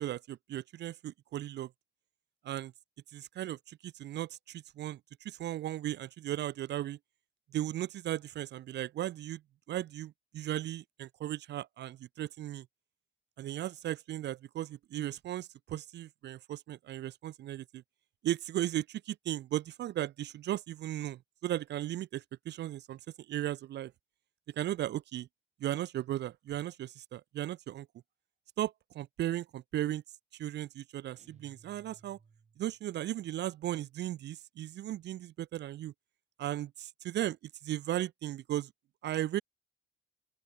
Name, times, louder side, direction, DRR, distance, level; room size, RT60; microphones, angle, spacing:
voice 1, 0.0-1.7 2.4-2.7 3.1-7.0 7.5-9.4 9.7-12.7 13.4-17.8 18.2-23.0 23.3-23.9 24.5-25.3 25.6-27.9 28.6-30.0 30.4-32.2 32.6-35.9 36.4-37.4 37.6-38.7 39.0-39.4, right 13 dB, 60° right, 0.4 m, -36 dB
sound 1, 31.2-32.9, right 5 dB, 35° right, 2.4 m, -61 dB
open air
cardioid pair, 90°, 20 cm